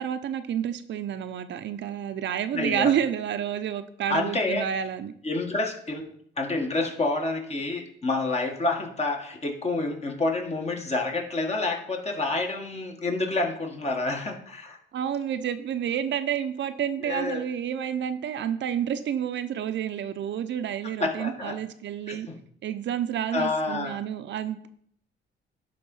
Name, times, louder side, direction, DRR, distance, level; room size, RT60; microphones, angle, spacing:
voice 1, 0.0-5.1 14.9-22.3 22.6-24.7, right 9 dB, 65° right, 10 dB, 0.8 m, -29 dB
voice 2, 2.5-2.9 4.1-4.7 5.2-14.8 17.0-17.4 21.0-21.6 22.1-22.4 23.3-24.0, left 2 dB, 35° left, 2 dB, 1.7 m, -28 dB
11.0 x 3.9 x 5.5 m, 0.64 s
cardioid pair, 90°, 20 cm